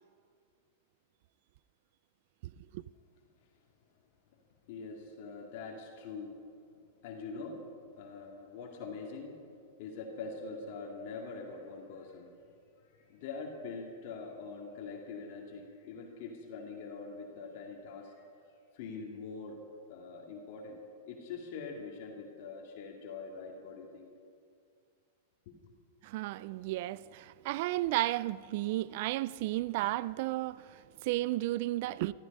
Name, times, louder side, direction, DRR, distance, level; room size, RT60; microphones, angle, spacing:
voice 1, 4.7-6.3 7.0-7.6 8.0-9.3 9.8-12.3 12.8-18.2 18.7-19.6 19.9-24.1 25.5-25.6, left 4 dB, 60° left, 2.1 m, -44 dB
voice 2, 26.0-32.1, right 17 dB, 55° right, 0.3 m, -33 dB
14.5 x 14.5 x 5.4 m
hypercardioid pair, 130°, 0 cm